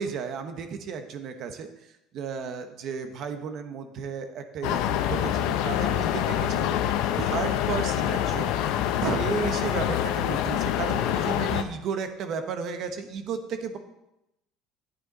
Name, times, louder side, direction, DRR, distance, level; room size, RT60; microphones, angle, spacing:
voice 1, 0.0-1.7 2.1-8.5 9.0-13.8, right 6 dB, 55° right, 7 dB, 1.1 m, -33 dB
sound 1, 4.6-11.6, left 11 dB, 75° left, 0.7 m, -26 dB
9.3 x 8.8 x 4.1 m, 0.90 s
supercardioid pair, 110°, 0 cm